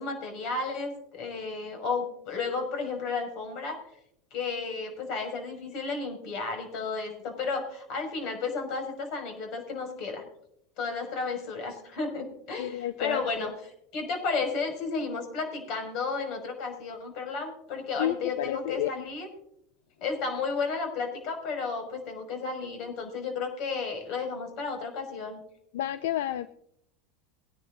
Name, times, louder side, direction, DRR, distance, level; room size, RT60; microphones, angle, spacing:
voice 1, 0.0-3.8 4.3-10.3 10.8-19.3 20.0-25.4, left 4 dB, 55° left, 4 dB, 5.9 m, -33 dB
voice 2, 12.6-13.5 18.0-19.1 25.7-26.5, left 12 dB, 85° left, 13 dB, 0.5 m, -31 dB
22.0 x 10.5 x 2.6 m, 0.75 s
supercardioid pair, 120°, 0 cm